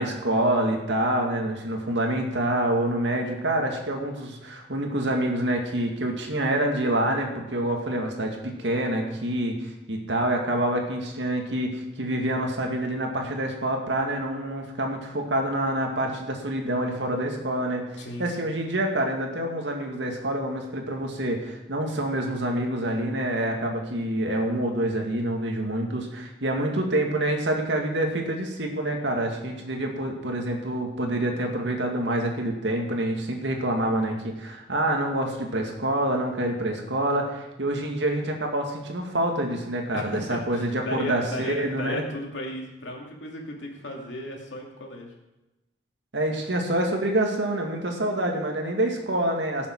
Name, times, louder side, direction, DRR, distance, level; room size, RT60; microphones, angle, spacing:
voice 1, 0.0-42.0 46.1-49.7, right 1 dB, 75° right, 2 dB, 2.1 m, -27 dB
voice 2, 18.0-18.3 39.9-45.1, left 1 dB, 85° left, 0 dB, 2.5 m, -35 dB
17.5 x 7.2 x 4.7 m, 0.99 s
head